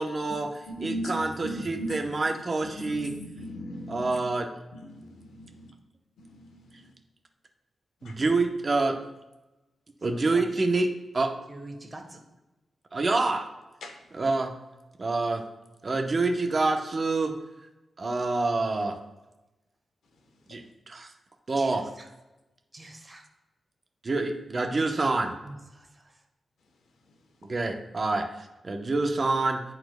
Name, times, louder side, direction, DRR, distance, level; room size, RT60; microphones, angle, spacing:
voice 1, 0.0-3.2 3.9-4.5 8.0-9.0 10.0-11.3 12.9-13.5 14.1-14.5 15.0-15.4 15.8-17.3 18.0-19.0 20.5-21.1 21.5-21.9 24.0-25.3 27.5-29.6, right 3 dB, 45° right, 4 dB, 0.8 m, -27 dB
voice 2, 0.7-2.2 2.6-4.2 4.7-5.7 6.2-6.8 8.0-8.1 13.8-13.9, equal, 90° left, 4 dB, 1.0 m, -38 dB
voice 3, 10.1-10.4 11.5-12.2 21.6-22.1 22.7-23.2 24.8-24.9 25.4-26.2, right 2 dB, 25° right, 3 dB, 1.2 m, -45 dB
10.5 x 4.3 x 2.2 m, 1.0 s
cardioid pair, 65°, 0 cm